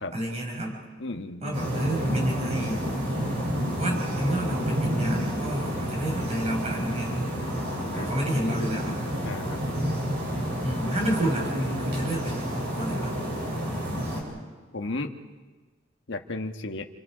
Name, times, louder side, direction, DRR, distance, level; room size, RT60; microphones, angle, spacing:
voice 1, 0.1-0.8 1.4-2.8 3.8-7.1 7.9-9.0 10.6-13.2, right 1 dB, 35° right, 0 dB, 5.6 m, -30 dB
voice 2, 1.0-1.6 7.8-8.1 9.2-9.6 14.7-15.1 16.1-16.9, left 2 dB, 65° left, 6 dB, 1.4 m, -34 dB
sound 1, 1.5-14.2, equal, 60° right, 7.4 m, -30 dB
29.5 x 25.0 x 5.0 m, 1.4 s
head